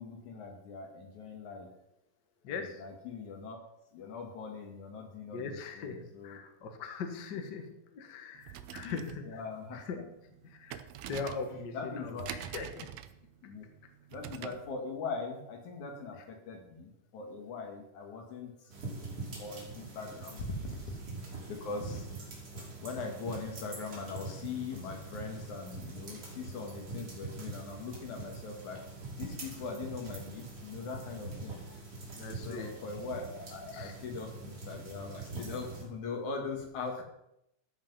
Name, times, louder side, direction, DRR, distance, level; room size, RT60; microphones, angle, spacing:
voice 1, 0.0-1.7 2.8-3.6 3.9-6.4 8.8-9.0 9.2-9.8 11.7-12.3 13.4-13.6 14.1-18.5 19.4-20.5 20.9-21.0 21.5-22.1 22.8-28.8 29.2-31.6 32.4-37.0, left 4 dB, 75° left, 2 dB, 3.2 m, -41 dB
voice 2, 2.4-2.8 5.3-9.4 9.7-10.0 10.4-12.9 16.1-16.2 20.6-20.7 31.7-31.8 32.1-32.8 33.7-33.9, left 5 dB, 55° left, 6 dB, 1.2 m, -41 dB
sound 1, 8.3-14.7, right 11 dB, 75° right, 1.6 m, -46 dB
sound 2, 18.7-35.8, right 3 dB, 50° right, 3.6 m, -44 dB
14.0 x 5.7 x 5.5 m, 0.81 s
omnidirectional pair, 3.4 m